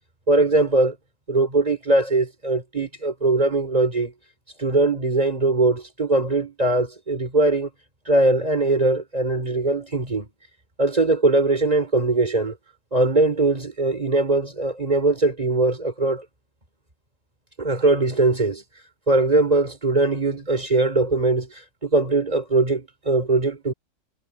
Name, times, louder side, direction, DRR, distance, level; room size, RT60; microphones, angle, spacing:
voice 1, 0.3-1.0 1.3-4.1 4.6-7.7 8.1-10.3 10.8-12.5 12.9-16.3 17.6-18.6 19.1-21.5 21.8-23.7, right 2 dB, 20° right, 3.4 m, -21 dB
omnidirectional pair, 1.9 m